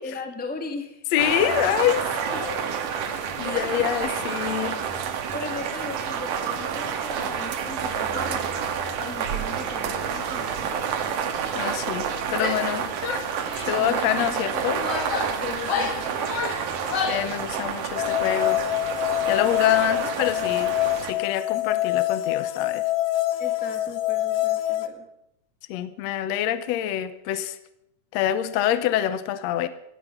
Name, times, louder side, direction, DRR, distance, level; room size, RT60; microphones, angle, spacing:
voice 1, 0.0-1.0 2.3-2.4 3.4-4.3 5.3-8.7 9.0-10.8 13.8-14.1 15.4-16.2 23.4-25.1, left 3 dB, 10° left, 5 dB, 0.4 m, -38 dB
voice 2, 1.1-2.7 3.4-4.8 11.6-12.9 13.7-14.8 17.1-18.6 19.3-22.9 25.7-27.6 28.1-29.7, left 11 dB, 70° left, 13 dB, 1.7 m, -26 dB
sound 1, 1.2-21.1, right 7 dB, 75° right, 2.9 m, -29 dB
Female speech woman speaking / Yell, 12.3-12.7 13.0-13.9 14.5-17.3, left 5 dB, 50° left, 2.5 m, -30 dB
sound 2, 18.0-24.9, left 15 dB, 90° left, 2.6 m, -25 dB
18.0 x 14.0 x 5.8 m, 0.79 s
omnidirectional pair, 3.8 m